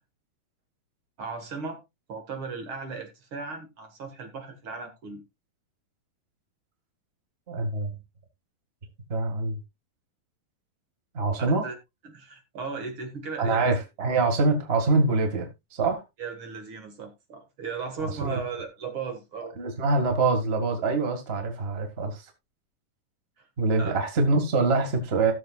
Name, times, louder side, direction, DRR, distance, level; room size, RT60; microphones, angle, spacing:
voice 1, 1.2-1.8 2.1-5.2 11.3-11.7 12.0-13.7 16.2-19.5 23.4-23.5 23.8-24.0, right 4 dB, 50° right, 1.6 m, -36 dB
voice 2, 7.5-7.9 9.1-9.6 11.1-11.6 13.4-16.0 18.2-18.4 19.6-22.2 23.6-25.3, right 3 dB, 80° right, 0.5 m, -24 dB
17.0 x 6.9 x 2.3 m
omnidirectional pair, 4.2 m